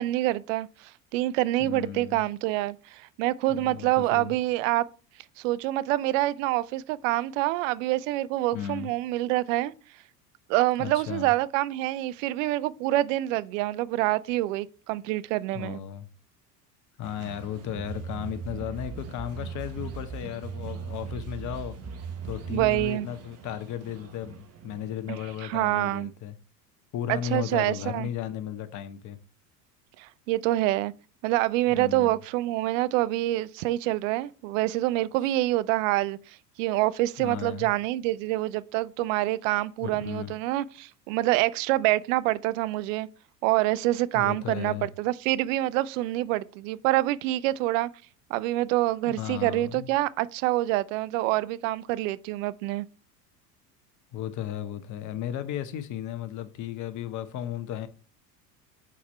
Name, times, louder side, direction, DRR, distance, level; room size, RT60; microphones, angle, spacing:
voice 1, 0.0-4.9 5.4-9.7 10.5-15.8 22.5-23.1 25.4-26.1 27.1-28.1 30.0-30.9 31.2-36.2 36.6-43.1 43.4-47.9 48.3-52.9, right 16 dB, 55° right, 0.5 m, -26 dB
voice 2, 1.6-2.2 3.5-4.3 8.5-8.9 10.8-11.3 15.5-16.1 17.0-21.8 22.2-26.4 26.9-29.2 31.7-32.2 37.2-37.7 39.8-40.3 44.1-44.9 49.1-49.9 54.1-57.9, left 10 dB, 40° left, 0.9 m, -35 dB
sound 1, 17.0-25.4, right 7 dB, 30° right, 1.1 m, -46 dB
sound 2, 17.8-23.0, right 5 dB, 15° right, 2.9 m, -38 dB
6.0 x 4.2 x 4.3 m
figure-of-eight pair, 75°, 49 cm